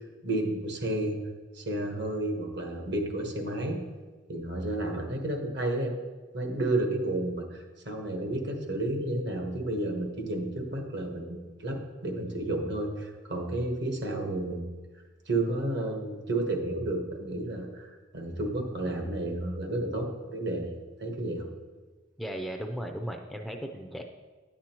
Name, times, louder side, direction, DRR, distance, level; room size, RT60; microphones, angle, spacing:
voice 1, 0.2-1.2 1.5-3.8 4.3-5.9 6.3-14.6 15.3-21.4, right 1 dB, 65° right, 3 dB, 1.2 m, -31 dB
voice 2, 22.2-24.0, equal, ahead, 3 dB, 0.4 m, -36 dB
10.0 x 7.4 x 2.9 m, 1.3 s
head